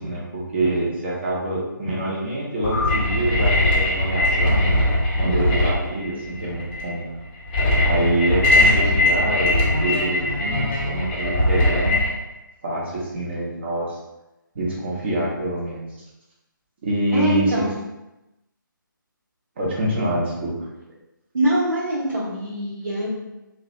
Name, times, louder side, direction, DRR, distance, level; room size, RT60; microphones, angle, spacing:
voice 1, 0.0-4.8 5.2-7.1 7.8-12.0 12.6-14.0 14.5-15.9 16.8-17.6 19.6-20.5, right 1 dB, 30° right, -5 dB, 0.6 m, -25 dB
sound 1, 2.6-12.1, left 1 dB, 25° left, 0.5 m, -20 dB
voice 2, 17.1-17.7 21.3-23.1, right 1 dB, 65° right, -11 dB, 0.9 m, -23 dB
2.4 x 2.1 x 2.4 m, 0.98 s
figure-of-eight pair, 145°, 11 cm